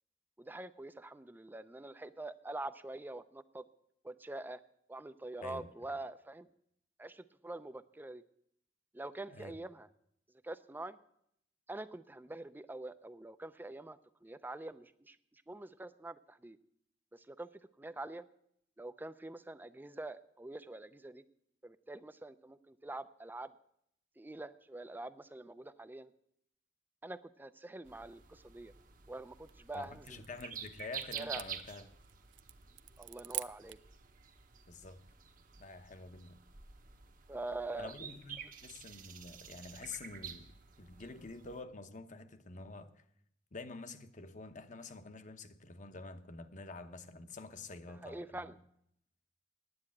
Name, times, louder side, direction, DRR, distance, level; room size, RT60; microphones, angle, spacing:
voice 1, 0.4-3.6 4.0-4.6 4.9-6.5 7.0-8.2 8.9-9.9 10.4-11.0 11.7-15.2 15.5-16.6 17.1-17.5 17.8-18.2 18.8-21.2 21.6-23.5 24.2-26.1 27.0-28.7 29.1-30.3 31.1-31.4 33.0-33.8 37.3-37.9 48.0-48.6, right 2 dB, 10° right, 0.4 m, -45 dB
sound 1, 27.8-41.6, right 8 dB, 50° right, 1.0 m, -50 dB
sound 2, 29.3-33.9, right 16 dB, 75° right, 0.5 m, -47 dB
voice 2, 29.7-31.9 34.7-35.0 35.6-36.4 37.8-42.9 43.5-48.5, left 3 dB, 45° left, 0.9 m, -48 dB
9.7 x 9.0 x 8.5 m
head